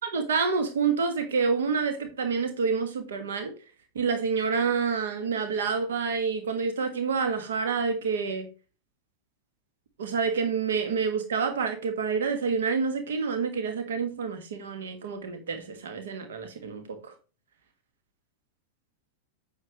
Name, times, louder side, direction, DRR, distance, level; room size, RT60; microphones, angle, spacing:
voice 1, 0.0-3.5 3.9-8.5 10.0-17.1, right 5 dB, 65° right, 1.4 m, -28 dB
8.9 x 6.5 x 3.0 m
figure-of-eight pair, 90°, 0 cm